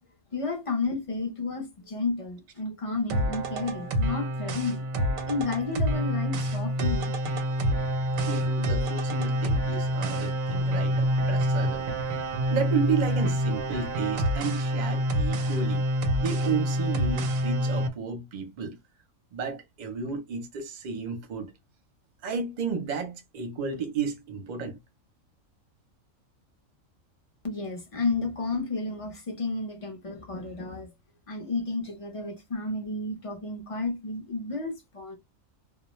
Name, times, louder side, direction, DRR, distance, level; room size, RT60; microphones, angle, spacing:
voice 1, 0.3-4.8 5.3-7.2 27.4-30.9 31.3-35.2, left 3 dB, 40° left, 0.5 m, -32 dB
sound 1, 3.1-17.9, equal, 90° right, 1.0 m, -27 dB
voice 2, 8.3-11.9 12.5-15.8 16.2-18.8 19.3-21.5 22.2-24.8, right 5 dB, 45° right, 0.6 m, -32 dB
2.2 x 2.0 x 2.9 m
omnidirectional pair, 1.4 m